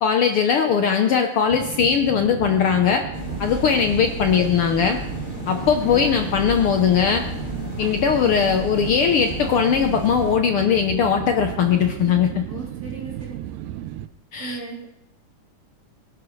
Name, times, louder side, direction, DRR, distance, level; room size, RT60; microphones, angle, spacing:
voice 1, 0.0-3.0 3.4-5.0 5.5-7.2 7.8-12.4 14.3-14.6, left 7 dB, 85° left, 5 dB, 1.2 m, -20 dB
sound 1, 1.5-14.1, right 13 dB, 75° right, 1.8 m, -34 dB
sound 2, 3.1-10.3, left 2 dB, 20° left, 1.5 m, -33 dB
voice 2, 12.5-13.4 14.4-14.9, right 4 dB, 30° right, -5 dB, 3.5 m, -36 dB
23.5 x 11.0 x 3.2 m, 0.89 s
omnidirectional pair, 3.7 m